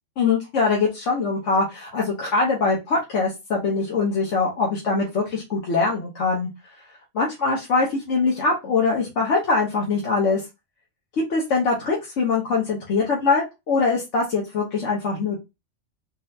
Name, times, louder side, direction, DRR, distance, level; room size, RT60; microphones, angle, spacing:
voice 1, 0.2-6.5 7.1-10.4 11.3-15.4, left 4 dB, 75° left, -3 dB, 1.3 m, -23 dB
4.2 x 2.1 x 2.7 m, 0.23 s
omnidirectional pair, 1.3 m